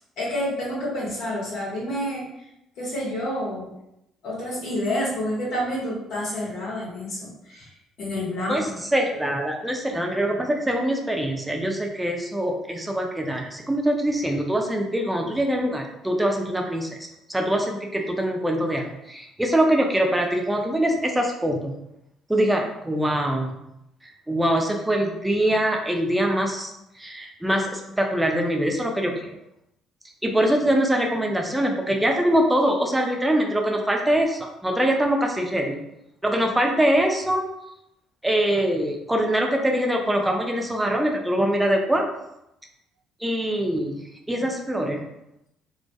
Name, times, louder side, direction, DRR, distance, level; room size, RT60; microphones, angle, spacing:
voice 1, 0.2-2.2 2.8-3.7 4.2-7.7 8.0-8.6, left 1 dB, 60° left, -5 dB, 0.8 m, -28 dB
voice 2, 8.5-16.9 17.3-21.8 22.3-23.6 24.0-26.7 27.0-29.3 30.2-35.8 36.2-37.5 38.2-42.0 43.2-44.0 44.3-45.0, right 1 dB, 10° right, 1 dB, 0.5 m, -23 dB
2.2 x 2.1 x 2.7 m, 0.84 s
hypercardioid pair, 50°, 0 cm